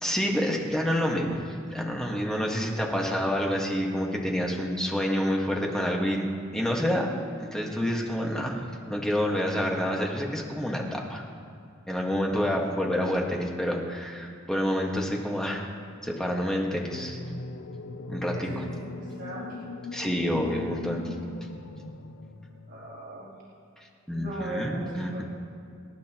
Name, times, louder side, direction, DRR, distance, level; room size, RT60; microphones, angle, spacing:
voice 1, 0.0-6.3 6.5-7.1 7.4-11.2 11.9-15.6 16.0-17.2 18.1-18.6 19.9-21.1 24.1-25.2, equal, 5° left, -1 dB, 1.6 m, -28 dB
sound 1, 16.9-23.0, left 2 dB, 70° left, 0.7 m, -39 dB
voice 2, 18.3-19.6 22.7-23.4 24.1-25.2, right 1 dB, 60° right, -11 dB, 3.5 m, -38 dB
26.0 x 12.0 x 3.0 m, 2.4 s
head